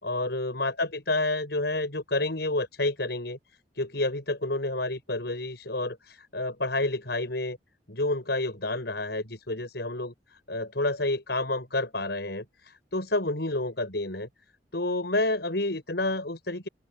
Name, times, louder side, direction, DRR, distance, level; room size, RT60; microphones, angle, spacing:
voice 1, 0.0-3.4 3.8-7.6 7.9-14.3 14.7-16.7, left 2 dB, 70° left, 6.9 m, -29 dB
open air
head